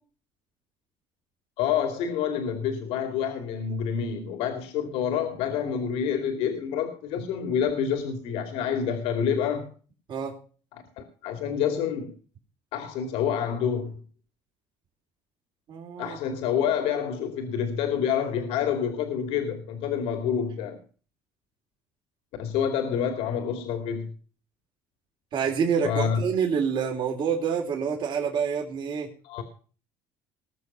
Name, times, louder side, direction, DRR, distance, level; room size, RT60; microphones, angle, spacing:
voice 1, 1.6-9.7 11.0-12.1 12.7-13.9 16.0-20.8 22.4-24.1 25.8-26.2 29.2-29.4, left 8 dB, 75° left, 2.5 m, -28 dB
voice 2, 15.7-16.2 25.3-29.1, right 6 dB, 50° right, 3.5 m, -27 dB
20.0 x 6.7 x 5.6 m
cardioid pair, 125°, 10 cm